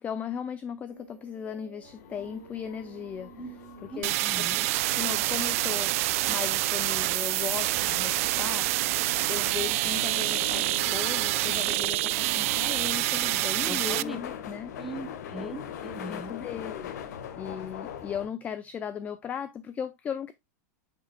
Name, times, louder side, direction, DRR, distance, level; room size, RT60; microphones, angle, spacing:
voice 1, 0.0-3.3 3.8-6.0 6.3-14.7 15.4-15.5 16.1-16.9 17.4-20.3, left 8 dB, 15° left, 0.4 m, -37 dB
sound 1, 0.9-11.6, right 7 dB, 85° right, 1.5 m, -50 dB
sound 2, 1.8-18.3, left 8 dB, 70° left, 1.4 m, -42 dB
voice 2, 3.9-4.6 13.6-14.2 14.8-16.3, right 2 dB, ahead, 0.9 m, -40 dB
sound 3, 4.0-14.0, right 19 dB, 50° right, 0.3 m, -27 dB
9.7 x 5.5 x 2.2 m
supercardioid pair, 160°, 9 cm